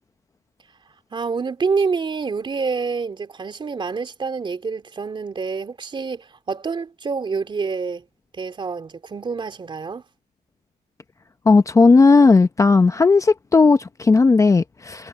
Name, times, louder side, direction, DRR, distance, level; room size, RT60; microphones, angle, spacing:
voice 1, 1.1-8.0 8.4-10.0, right 5 dB, 30° right, 3.0 m, -27 dB
voice 2, 11.5-15.1, left 4 dB, 20° left, 0.7 m, -15 dB
cardioid pair, 110°, 17 cm